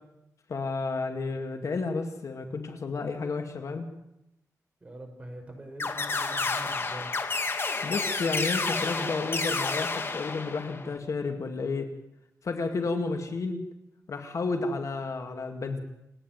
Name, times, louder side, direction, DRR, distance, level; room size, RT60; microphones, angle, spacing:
voice 1, 0.5-3.9 7.8-11.9 12.4-13.6 14.1-15.8, left 3 dB, 55° left, 6 dB, 2.2 m, -31 dB
voice 2, 4.8-7.1, right 1 dB, 20° right, 2 dB, 5.9 m, -43 dB
sound 1, 5.8-11.0, left 3 dB, 40° left, 2.1 m, -30 dB
28.5 x 10.5 x 9.1 m, 0.85 s
wide cardioid pair, 115°, 6 cm